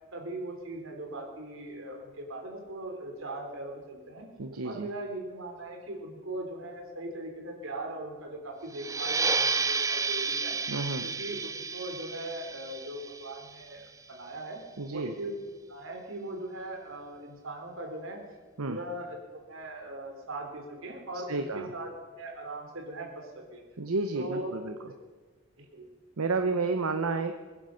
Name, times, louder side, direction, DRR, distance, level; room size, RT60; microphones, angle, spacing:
voice 1, 0.1-4.3 4.6-10.6 11.0-14.6 14.9-15.3 15.7-18.2 18.6-21.9 22.2-23.6 24.1-24.6 25.6-25.9, right 1 dB, 70° right, 2 dB, 3.6 m, -39 dB
voice 2, 4.4-4.9 10.7-11.1 14.8-15.1 18.6-18.8 21.3-21.7 23.8-24.8 26.2-27.3, right 3 dB, 85° right, 7 dB, 0.9 m, -31 dB
sound 1, 8.7-14.0, right 4 dB, 15° right, 0.5 m, -31 dB
22.0 x 10.0 x 6.5 m, 1.4 s
head